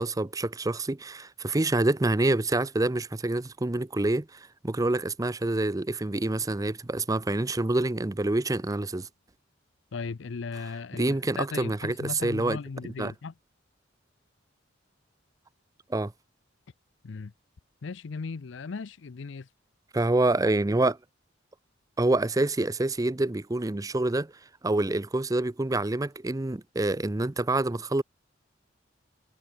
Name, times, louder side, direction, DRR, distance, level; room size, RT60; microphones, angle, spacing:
voice 1, 0.0-9.1 11.0-12.6 13.0-13.1 15.9-16.1 19.9-21.0 22.0-24.3 24.6-28.0, right 2 dB, 20° right, 0.6 m, -27 dB
voice 2, 9.9-13.3 17.0-17.3 17.8-19.5, left 4 dB, 65° left, 0.5 m, -37 dB
head